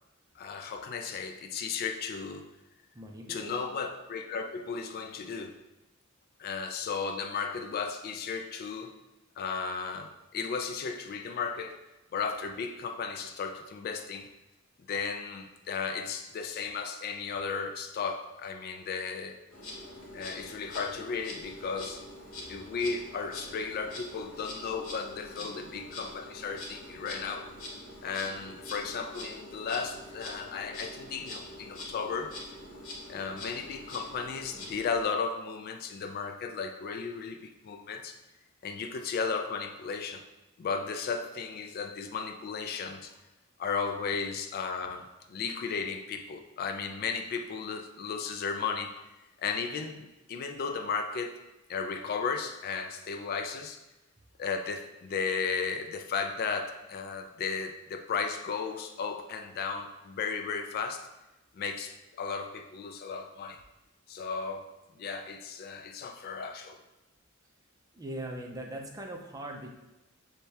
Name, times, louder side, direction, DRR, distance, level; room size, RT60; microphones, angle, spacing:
voice 1, 0.4-2.4 3.3-5.6 6.4-8.9 9.4-11.8 12.1-14.3 14.9-19.4 20.1-22.0 22.5-27.5 28.0-32.3 33.1-38.1 38.6-40.2 40.6-43.1 43.6-48.9 49.4-51.4 51.7-53.8 54.4-61.0 61.6-63.6 64.1-64.7 65.0-66.8, left 5 dB, 45° left, 6 dB, 0.3 m, -35 dB
voice 2, 2.9-3.6 25.2-25.5 67.9-69.7, right 1 dB, 15° right, 1 dB, 0.4 m, -41 dB
Insect, 19.5-35.0, left 1 dB, 75° left, 0.9 m, -44 dB
6.3 x 2.2 x 2.7 m, 1.0 s
head